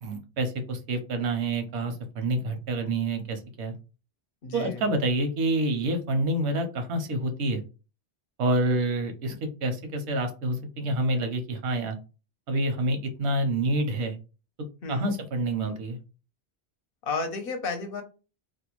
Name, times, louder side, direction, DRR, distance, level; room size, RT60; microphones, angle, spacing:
voice 1, 0.0-3.7 4.5-7.6 8.4-12.0 12.5-14.1 14.9-16.0, right 1 dB, 85° right, 6 dB, 0.9 m, -27 dB
voice 2, 4.4-4.8 14.8-15.1 17.1-18.0, left 4 dB, 60° left, 5 dB, 0.8 m, -32 dB
2.5 x 2.2 x 2.9 m, 0.33 s
omnidirectional pair, 1.1 m